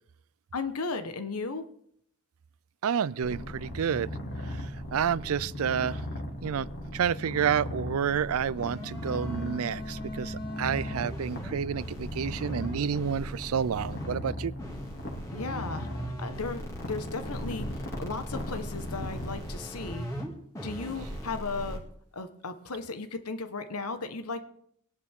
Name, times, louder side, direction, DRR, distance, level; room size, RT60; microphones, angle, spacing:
voice 1, 0.5-1.7 15.3-20.1 20.6-21.8 22.1-24.4, left 3 dB, 85° left, 1.3 m, -35 dB
voice 2, 2.8-4.1 4.9-6.0 6.4-6.7 6.9-14.5, right 7 dB, 75° right, 0.4 m, -29 dB
Purr, 3.2-19.4, left 1 dB, 50° left, 2.7 m, -38 dB
sound 1, 8.6-14.1 14.6-20.3 20.6-21.8, equal, 15° left, 2.3 m, -40 dB
20.0 x 11.0 x 3.7 m
head